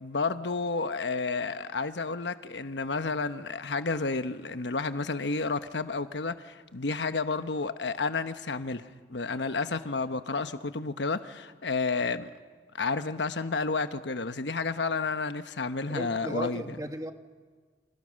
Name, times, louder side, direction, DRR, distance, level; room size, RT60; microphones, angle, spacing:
voice 1, 0.0-12.3 12.7-16.6, left 4 dB, 90° left, 1.1 m, -31 dB
voice 2, 15.9-17.1, right 1 dB, 20° right, 1.5 m, -35 dB
29.0 x 27.0 x 6.5 m
head